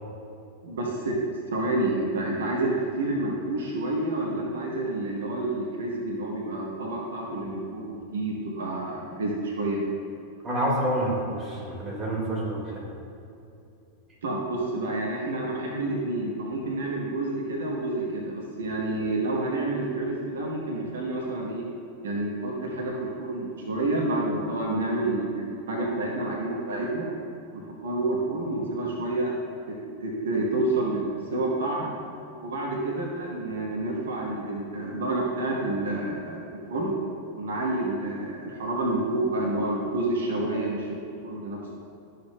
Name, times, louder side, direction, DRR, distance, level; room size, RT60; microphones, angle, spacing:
voice 1, 0.6-1.2 1.5-9.8 14.2-21.6 22.0-27.1 27.5-29.4 30.0-31.9 32.4-36.9 37.3-41.8, right 2 dB, 65° right, -2 dB, 1.1 m, -29 dB
voice 2, 10.4-12.8, right 1 dB, 20° right, -4 dB, 1.8 m, -28 dB
12.5 x 6.6 x 2.2 m, 2.7 s
figure-of-eight pair, 90°, 0 cm